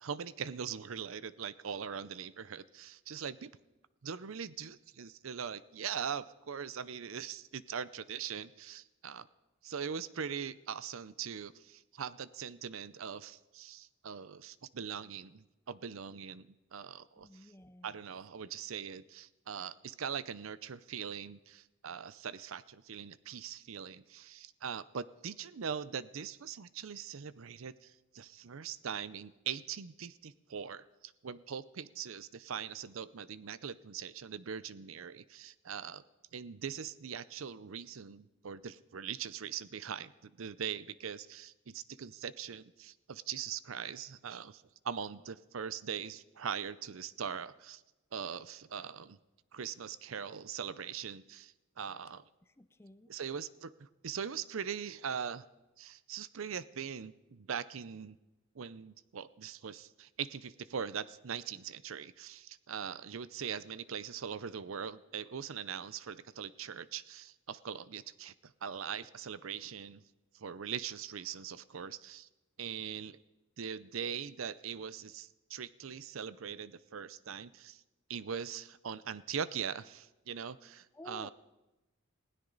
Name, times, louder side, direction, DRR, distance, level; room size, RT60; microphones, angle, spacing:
voice 1, 0.0-3.5 4.0-9.3 9.6-17.5 17.8-36.0 36.3-47.8 48.1-49.2 49.5-52.2 53.1-55.5 55.8-58.2 58.5-70.0 70.3-72.3 72.6-73.2 73.6-77.8 78.1-81.3, right 7 dB, 75° right, 17 dB, 0.6 m, -41 dB
voice 2, 17.2-18.0 52.6-53.1 80.9-81.3, left 1 dB, 10° left, 13 dB, 0.5 m, -52 dB
20.0 x 16.5 x 4.0 m, 1.0 s
head